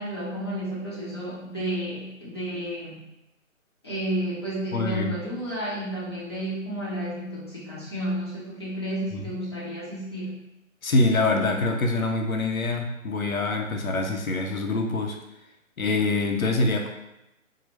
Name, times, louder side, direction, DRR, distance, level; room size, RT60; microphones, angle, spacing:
voice 1, 0.0-3.0 3.8-10.4, right 1 dB, 20° left, -9 dB, 0.7 m, -31 dB
voice 2, 4.7-5.1 9.1-9.3 10.8-15.2 15.8-16.9, left 2 dB, 80° left, 2 dB, 0.7 m, -25 dB
3.8 x 2.0 x 3.3 m, 0.89 s
figure-of-eight pair, 145°, 41 cm